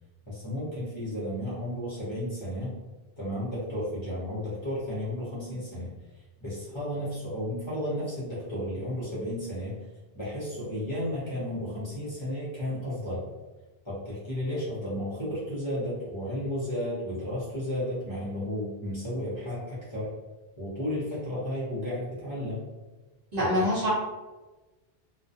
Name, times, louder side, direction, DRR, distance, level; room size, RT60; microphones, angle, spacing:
voice 1, 0.3-2.8 3.2-5.9 6.4-9.8 10.1-13.2 13.8-20.1 20.6-22.6 23.4-23.5, left 1 dB, 30° left, -9 dB, 0.8 m, -33 dB
voice 2, 23.3-23.9, left 1 dB, 45° right, -8 dB, 0.7 m, -25 dB
2.3 x 2.2 x 2.6 m, 1.2 s
omnidirectional pair, 1.0 m